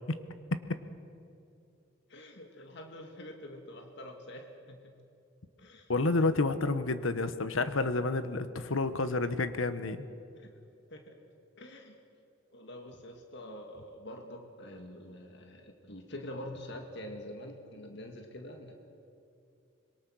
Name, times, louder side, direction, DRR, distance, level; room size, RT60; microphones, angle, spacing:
voice 1, 2.1-4.9 5.6-5.9 6.2-6.3 10.4-10.5 10.9-11.1 11.6-11.9 12.5-18.7, left 1 dB, 60° left, 3 dB, 2.0 m, -46 dB
voice 2, 5.9-10.1, left 3 dB, 80° left, 11 dB, 1.2 m, -29 dB
26.0 x 22.5 x 6.3 m, 2.6 s
head